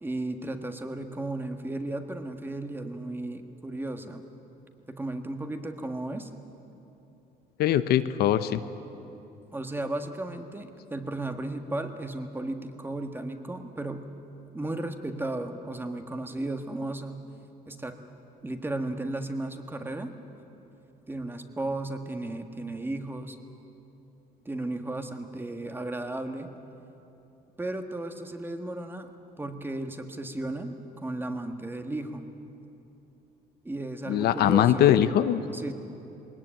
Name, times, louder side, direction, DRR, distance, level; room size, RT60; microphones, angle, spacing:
voice 1, 0.0-4.2 4.9-6.3 9.5-14.0 14.5-17.2 17.7-18.0 18.4-20.1 21.1-23.4 24.4-26.5 27.6-29.1 29.4-32.3 33.6-34.9 35.5-35.7, right 2 dB, 10° right, 6 dB, 1.5 m, -34 dB
voice 2, 7.6-8.6 34.1-35.4, left 11 dB, 70° left, 11 dB, 0.8 m, -21 dB
20.5 x 19.0 x 9.0 m, 2.9 s
cardioid pair, 110°, 17 cm